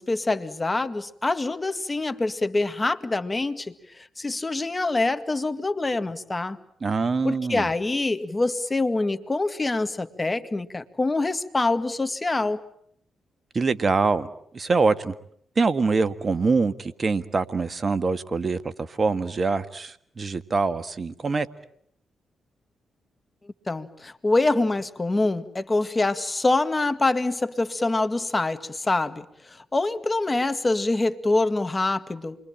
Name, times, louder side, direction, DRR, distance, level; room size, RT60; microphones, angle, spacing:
voice 1, 0.0-6.6 7.2-12.6 23.7-32.4, left 2 dB, 25° left, 10 dB, 1.9 m, -25 dB
voice 2, 6.8-7.7 13.5-14.3 14.5-15.1 15.6-21.5, right 4 dB, 45° right, 13 dB, 1.7 m, -24 dB
28.5 x 23.0 x 9.0 m, 0.70 s
hypercardioid pair, 45°, 0 cm